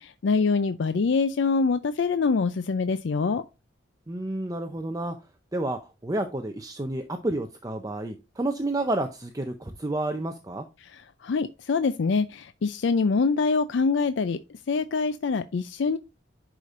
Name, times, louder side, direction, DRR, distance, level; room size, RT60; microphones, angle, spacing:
voice 1, 0.0-3.4 10.8-14.4 14.7-16.0, left 4 dB, 65° left, 0.4 m, -25 dB
voice 2, 4.1-5.2 5.5-10.6, right 2 dB, 20° right, 0.5 m, -30 dB
10.5 x 5.0 x 2.5 m
head